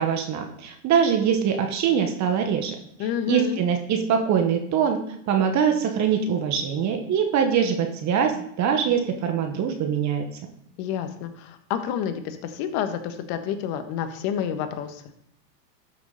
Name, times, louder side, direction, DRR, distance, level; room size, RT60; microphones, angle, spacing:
voice 1, 0.0-2.7 3.3-5.0 5.3-10.3, right 7 dB, 35° right, 5 dB, 1.5 m, -23 dB
voice 2, 3.0-3.6 10.8-15.0, left 9 dB, 45° left, 8 dB, 1.5 m, -29 dB
12.5 x 6.7 x 4.1 m, 0.68 s
hypercardioid pair, 110°, 50 cm